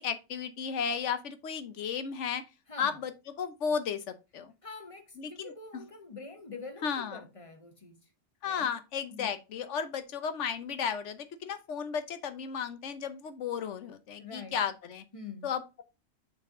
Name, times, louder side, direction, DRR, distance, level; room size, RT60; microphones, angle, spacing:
voice 1, 0.0-2.4 2.8-3.1 3.4-4.5 5.2-5.8 6.8-7.2 8.4-15.0 15.4-15.8, left 7 dB, 85° left, 1.2 m, -34 dB
voice 2, 4.6-8.0 8.4-8.7 9.1-9.3 14.2-14.6 15.1-15.5, left 4 dB, 30° left, 1.0 m, -45 dB
6.5 x 4.2 x 3.7 m
omnidirectional pair, 1.2 m